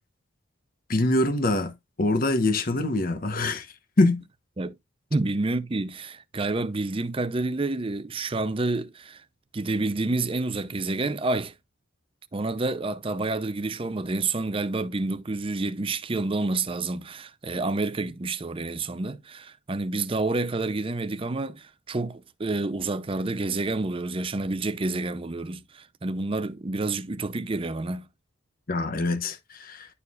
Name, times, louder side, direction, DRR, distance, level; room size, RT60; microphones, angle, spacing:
voice 1, 0.9-1.7 2.0-3.7 4.0-4.2 28.7-29.9, left 2 dB, 45° left, 1.0 m, -24 dB
voice 2, 5.1-9.2 9.5-11.5 12.3-28.0, right 2 dB, 25° right, 0.5 m, -29 dB
11.0 x 4.5 x 2.4 m
head